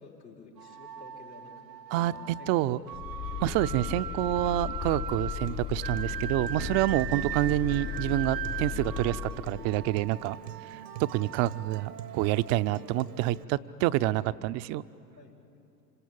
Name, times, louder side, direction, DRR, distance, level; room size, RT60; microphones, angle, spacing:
voice 1, 0.0-1.5 1.9-2.8 3.3-3.5 10.2-10.4 15.2-15.5, left 4 dB, 90° left, -2 dB, 4.7 m, -50 dB
sound 1, 0.6-13.4, right 10 dB, 90° right, 0.7 m, -40 dB
voice 2, 1.9-2.8 3.4-10.4 10.7-14.8, right 15 dB, 35° right, 14 dB, 0.6 m, -28 dB
sound 2, 2.9-10.2, left 10 dB, 30° left, 0.7 m, -37 dB
Acoustic guitar, 5.4-13.4, right 11 dB, 70° right, 1.1 m, -45 dB
26.5 x 26.0 x 8.6 m, 2.7 s
figure-of-eight pair, 90°, 49 cm